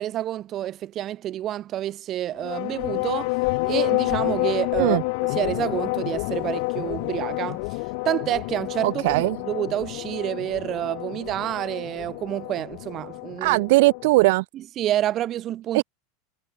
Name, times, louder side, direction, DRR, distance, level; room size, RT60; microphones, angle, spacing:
voice 1, 0.0-3.3 3.6-5.0 5.3-7.8 8.1-13.6 14.5-15.8, right 12 dB, 40° right, 3.5 m, -28 dB
sound 1, 2.4-14.3, left 31 dB, 65° left, 0.7 m, -29 dB
voice 2, 8.8-9.4 13.4-14.4 15.7-15.8, right 22 dB, 70° right, 1.5 m, -19 dB
supercardioid pair, 115°, 0 cm